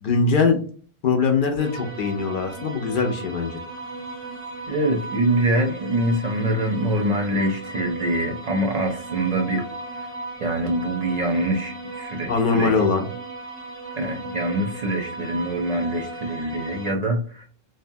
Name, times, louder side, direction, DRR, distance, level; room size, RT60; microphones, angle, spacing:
voice 1, 0.0-0.6 1.0-3.6 12.3-13.1, left 4 dB, 60° left, 4 dB, 0.7 m, -21 dB
sound 1, 1.6-16.9, right 2 dB, 10° left, 0.8 m, -37 dB
voice 2, 4.7-9.6 10.4-12.7 14.0-17.4, right 1 dB, 55° right, 2 dB, 0.5 m, -24 dB
2.7 x 2.1 x 2.6 m, 0.42 s
omnidirectional pair, 1.1 m